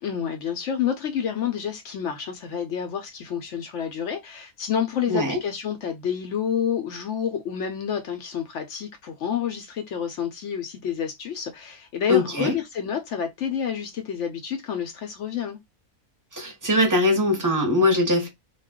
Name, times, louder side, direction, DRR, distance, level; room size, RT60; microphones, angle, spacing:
voice 1, 0.0-15.6, left 8 dB, 65° left, 0.7 m, -29 dB
voice 2, 5.1-5.4 12.1-12.5 16.3-18.3, left 2 dB, 20° right, 0.6 m, -21 dB
2.4 x 2.2 x 3.5 m
omnidirectional pair, 1.6 m